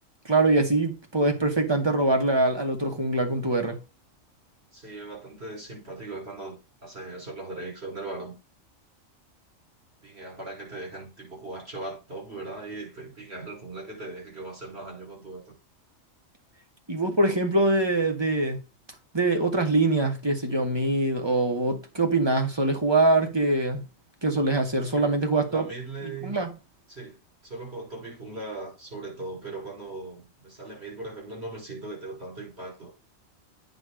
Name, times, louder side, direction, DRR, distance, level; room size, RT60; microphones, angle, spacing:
voice 1, 0.2-3.8 16.9-18.6 19.1-23.9 24.2-25.7 26.0-26.5, right 2 dB, 20° right, 2.2 m, -23 dB
voice 2, 4.7-8.4 10.0-15.5 24.7-25.1 25.4-26.3 26.9-32.9, right 2 dB, 55° right, 5.8 m, -39 dB
9.4 x 3.7 x 6.3 m
omnidirectional pair, 1.3 m